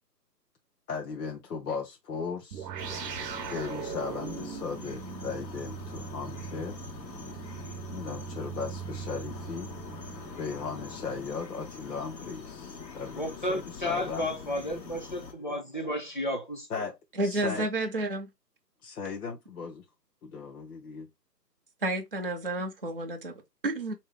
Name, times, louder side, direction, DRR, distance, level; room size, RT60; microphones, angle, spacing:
voice 1, 0.9-2.7 3.4-6.8 7.9-9.7 10.4-14.3 16.7-17.7 18.8-19.8 20.2-21.1, left 5 dB, 60° left, 0.8 m, -37 dB
sound 1, 2.5-11.3, right 9 dB, 70° right, 0.7 m, -41 dB
sound 2, 2.8-15.3, left 5 dB, 80° left, 1.2 m, -44 dB
voice 2, 13.2-16.7, left 1 dB, 30° left, 0.5 m, -32 dB
voice 3, 17.2-18.3 21.8-23.9, right 2 dB, 35° right, 0.5 m, -31 dB
3.3 x 2.8 x 3.4 m
hypercardioid pair, 155°, 50 cm